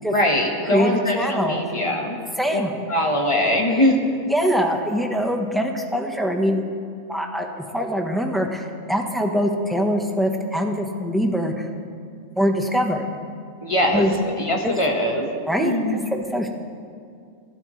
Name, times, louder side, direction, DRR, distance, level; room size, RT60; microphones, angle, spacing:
voice 1, 0.0-2.2 2.5-2.6 2.9-4.0 13.6-14.1 14.4-15.3 15.6-16.0, left 1 dB, 20° left, 1 dB, 1.6 m, -22 dB
voice 2, 0.6-1.6 2.4-2.7 3.7-3.8 4.3-6.6 7.1-11.7 12.4-13.1 13.9-14.1 14.6-14.7 15.5-16.5, equal, ahead, 2 dB, 1.0 m, -23 dB
27.5 x 11.5 x 3.3 m, 2.3 s
omnidirectional pair, 1.5 m